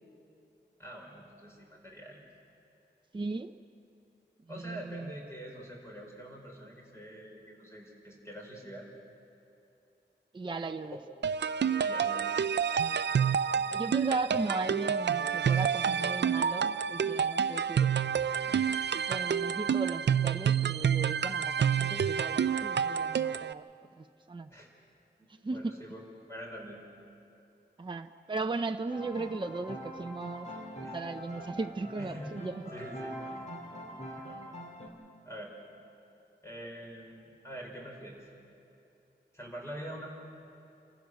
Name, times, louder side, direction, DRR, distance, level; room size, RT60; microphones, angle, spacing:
voice 1, 0.8-2.2 4.5-8.9 10.9-11.0 11.8-12.4 12.7-12.8 24.5-24.7 25.5-26.0 26.3-26.8 30.8-31.0 32.0-32.4 32.7-33.5 34.1-34.3 35.2-35.5 36.4-38.3 39.3-40.1, equal, 15° left, -2 dB, 5.0 m, -45 dB
voice 2, 3.1-3.6 4.5-5.1 10.3-11.0 13.7-17.9 18.4-23.6 24.0-24.5 25.4-25.7 27.8-30.5 30.8-32.6, right 3 dB, 25° right, 6 dB, 0.6 m, -37 dB
sound 1, 11.2-23.5, right 7 dB, 70° right, 0.5 m, -28 dB
sound 2, 28.9-34.9, equal, 40° left, 2.9 m, -44 dB
29.0 x 15.5 x 6.4 m, 2.9 s
wide cardioid pair, 100°, 18 cm